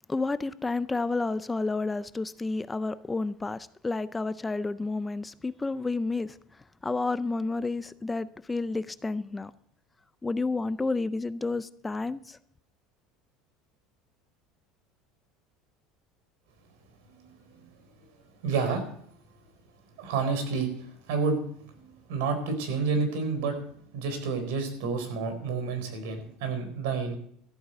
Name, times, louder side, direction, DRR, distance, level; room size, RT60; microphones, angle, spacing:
voice 1, 0.1-9.5 10.2-12.4, left 3 dB, 10° left, 0.4 m, -30 dB
voice 2, 18.4-18.8 20.0-20.7 21.1-21.4 21.8-23.5 23.9-27.1, right 4 dB, 85° right, 4.2 m, -29 dB
14.0 x 8.8 x 6.7 m
cardioid pair, 145°, 0 cm